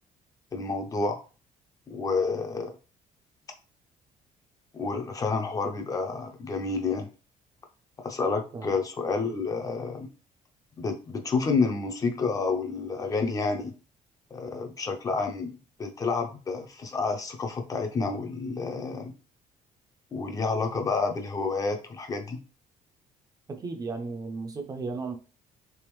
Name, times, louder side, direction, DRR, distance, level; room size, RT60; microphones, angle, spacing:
voice 1, 0.5-1.2 1.9-2.7 4.7-7.1 8.0-10.1 10.8-13.7 14.3-15.5 15.8-19.1 20.1-22.4, left 4 dB, 25° left, 0.5 m, -29 dB
voice 2, 23.5-25.2, right 4 dB, 25° right, 0.5 m, -35 dB
3.4 x 3.3 x 3.0 m
cardioid pair, 165°, 14 cm